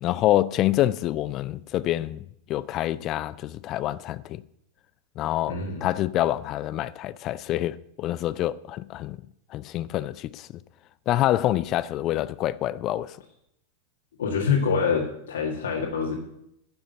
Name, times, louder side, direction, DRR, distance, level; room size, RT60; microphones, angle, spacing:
voice 1, 0.0-2.2 2.5-4.4 5.2-9.2 9.5-10.5 11.1-13.2, left 14 dB, 35° left, 0.4 m, -26 dB
voice 2, 5.5-5.9 14.2-16.1, left 6 dB, 65° left, 2.0 m, -25 dB
10.5 x 7.1 x 8.9 m
figure-of-eight pair, 90°, 0 cm